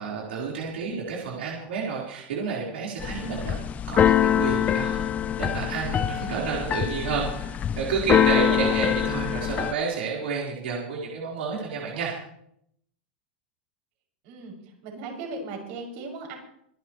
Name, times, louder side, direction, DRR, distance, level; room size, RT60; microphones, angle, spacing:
voice 1, 0.0-3.6 3.9-5.1 5.4-12.2, right 5 dB, 85° right, -4 dB, 4.2 m, -30 dB
Keyboard (musical), 3.0-9.7, left 10 dB, 25° left, 0.6 m, -24 dB
voice 2, 8.1-8.7 14.2-14.5 14.8-16.4, right 3 dB, 55° right, 0 dB, 6.4 m, -36 dB
25.0 x 11.0 x 3.1 m, 0.73 s
supercardioid pair, 130°, 6 cm